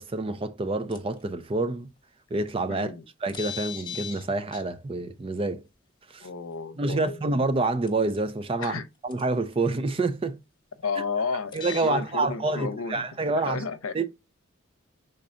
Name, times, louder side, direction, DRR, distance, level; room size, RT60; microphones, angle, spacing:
voice 1, 0.0-1.9 2.3-2.9 3.2-5.6 6.1-6.3 6.8-10.4 11.5-13.6 13.9-14.1, right 3 dB, 25° right, 0.4 m, -27 dB
sound 1, 0.9-1.2 2.6-2.7 3.3-4.2 4.5-4.6 6.5-6.6 7.9-8.3 8.6-8.7 9.1-9.2 11.5-11.9, left 9 dB, 20° left, 0.9 m, -37 dB
voice 2, 2.7-3.0 6.2-7.2 8.6-8.8 10.8-13.0 13.3-14.1, left 5 dB, 85° left, 0.7 m, -32 dB
5.4 x 3.8 x 2.5 m
head